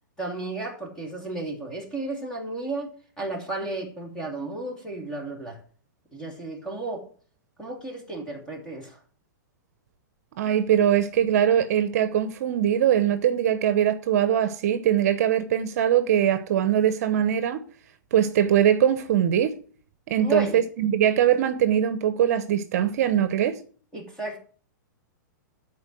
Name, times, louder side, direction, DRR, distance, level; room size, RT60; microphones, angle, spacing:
voice 1, 0.2-2.9 3.2-5.6 6.1-7.1 7.6-9.0 20.2-20.6 23.9-24.4, right 2 dB, 5° left, 2.5 m, -33 dB
voice 2, 10.4-17.6 18.1-19.5 20.1-23.6, right 10 dB, 50° right, 0.9 m, -22 dB
11.0 x 4.6 x 7.7 m
hypercardioid pair, 160°, 10 cm